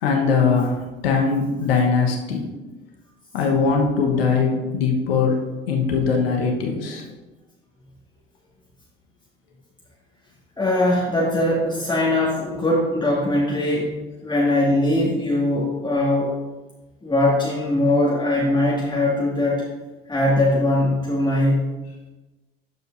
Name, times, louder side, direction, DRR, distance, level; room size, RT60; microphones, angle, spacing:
voice 1, 0.0-2.5 3.3-5.4 5.7-7.0, left 5 dB, 80° left, 1 dB, 1.2 m, -21 dB
voice 2, 10.6-14.0 14.2-16.4 17.0-19.6 20.1-21.7, left 1 dB, 15° left, -6 dB, 1.9 m, -21 dB
12.0 x 5.4 x 2.6 m, 1.1 s
hypercardioid pair, 65°, 29 cm